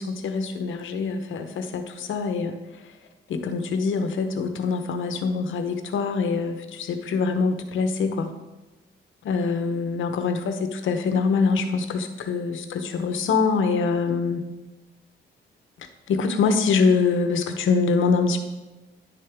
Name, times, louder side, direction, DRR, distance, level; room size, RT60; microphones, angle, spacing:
voice 1, 0.0-2.6 3.3-8.3 9.2-14.4 16.1-18.4, left 4 dB, 80° left, 7 dB, 0.9 m, -24 dB
10.0 x 6.9 x 3.5 m, 1.1 s
wide cardioid pair, 165°, 20 cm